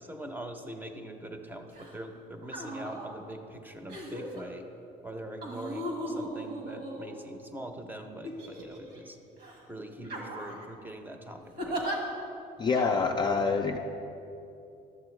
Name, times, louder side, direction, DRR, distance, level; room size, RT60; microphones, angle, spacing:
voice 1, 0.0-4.7 5.0-9.2 9.7-11.8, right 1 dB, 10° right, 5 dB, 0.6 m, -43 dB
sound 1, 1.7-1.9 2.4-3.1 3.9-4.4 5.4-7.5 8.2-9.0 9.4-9.6 10.0-10.6 11.6-12.0 12.7-12.9, right 1 dB, 75° right, 1.5 m, -37 dB
voice 2, 12.6-13.8, left 4 dB, 25° left, 2 dB, 0.4 m, -26 dB
11.0 x 7.0 x 3.2 m, 2.9 s
cardioid pair, 110°, 17 cm